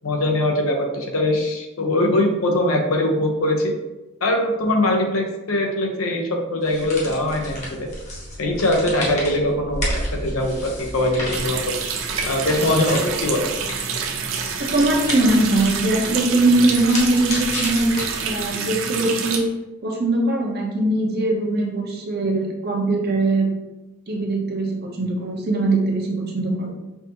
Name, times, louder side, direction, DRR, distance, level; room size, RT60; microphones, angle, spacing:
voice 1, 0.0-3.7 4.2-7.9 8.4-11.7 12.3-13.5, left 1 dB, 85° left, 2 dB, 0.8 m, -22 dB
sound 1, 6.6-18.5, left 1 dB, 35° left, 1.1 m, -32 dB
Water tap faucet, 11.3-19.4, right 6 dB, 75° right, 0.6 m, -27 dB
voice 2, 14.6-19.4 19.8-23.5 24.1-26.7, right 2 dB, 50° right, 0 dB, 0.8 m, -21 dB
5.7 x 2.7 x 2.8 m, 1.0 s
head